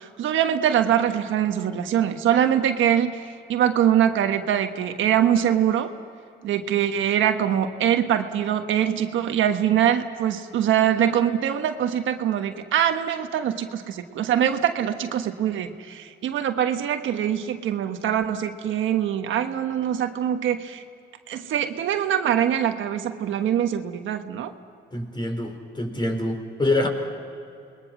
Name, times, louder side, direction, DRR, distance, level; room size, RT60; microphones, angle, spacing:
voice 1, 0.0-5.9 6.4-20.8 21.3-24.5, right 9 dB, 80° right, 6 dB, 1.4 m, -23 dB
voice 2, 24.9-26.9, left 2 dB, 25° left, 4 dB, 4.6 m, -25 dB
28.0 x 21.0 x 6.1 m, 2.5 s
cardioid pair, 90°, 20 cm